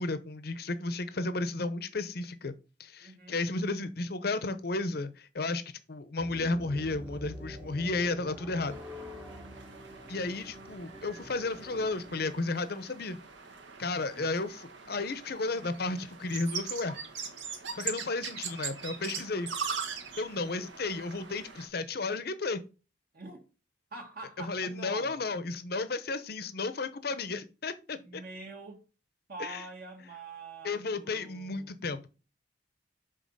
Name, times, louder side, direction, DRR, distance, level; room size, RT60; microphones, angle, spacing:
voice 1, 0.0-2.5 2.8-5.6 5.9-8.8 10.1-13.2 13.8-17.0 17.7-19.5 20.2-22.6 24.4-28.2 29.4-29.7 30.6-32.2, left 3 dB, 55° left, 0.7 m, -33 dB
voice 2, 3.0-3.4 14.1-14.3 23.1-23.4 23.9-25.2 27.9-28.9 29.3-31.7, right 3 dB, 50° right, 1.6 m, -45 dB
sound 1, 6.2-12.4, equal, 10° right, 0.8 m, -46 dB
sound 2, 8.7-21.7, right 6 dB, 70° right, 1.3 m, -41 dB
6.3 x 4.0 x 5.3 m
head